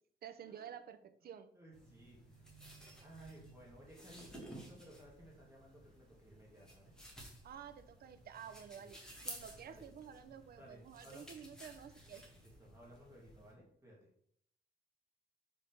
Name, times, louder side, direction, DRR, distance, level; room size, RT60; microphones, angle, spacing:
voice 1, 0.2-1.5 7.4-12.3, right 8 dB, 55° right, 10 dB, 0.6 m, -51 dB
voice 2, 1.2-2.5 3.0-7.0 8.8-8.9 9.6-9.8 10.2-11.2 12.4-14.0, right 1 dB, 15° right, -4 dB, 1.9 m, -59 dB
Brick handling sounds, 1.7-13.5, equal, 5° left, 1.5 m, -55 dB
5.3 x 3.9 x 5.8 m, 0.67 s
wide cardioid pair, 175°, 18 cm